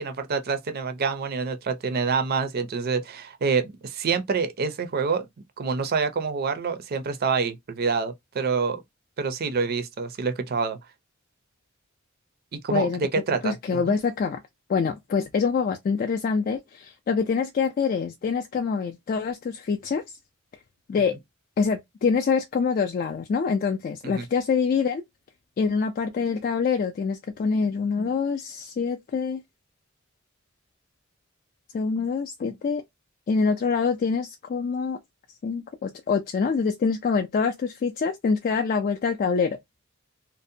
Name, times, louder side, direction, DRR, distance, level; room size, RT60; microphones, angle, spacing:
voice 1, 0.0-5.3 5.6-8.8 9.2-10.8 12.6-13.9 24.0-24.3, right 5 dB, 50° right, 0.5 m, -27 dB
voice 2, 12.7-13.0 13.4-14.4 14.7-20.0 20.9-21.2 21.6-25.0 25.6-29.4 31.7-32.8 33.3-35.0 35.4-39.6, left 5 dB, 45° left, 0.3 m, -25 dB
2.6 x 2.0 x 2.6 m
head